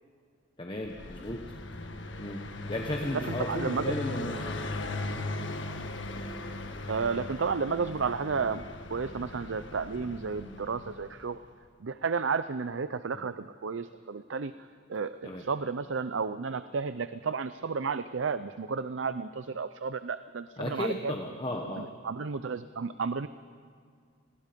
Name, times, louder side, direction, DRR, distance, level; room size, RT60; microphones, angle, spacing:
voice 1, 0.6-1.4 2.2-2.4 2.7-4.9 13.1-13.3 15.2-15.4 20.6-21.9, left 1 dB, 25° left, 2 dB, 1.2 m, -35 dB
Car passing by, 0.8-11.4, left 2 dB, 75° left, 1.6 m, -38 dB
voice 2, 3.1-4.0 6.9-11.4 11.8-21.1 21.7-23.3, right 5 dB, 85° right, 12 dB, 0.6 m, -32 dB
29.5 x 20.5 x 5.2 m, 2.1 s
head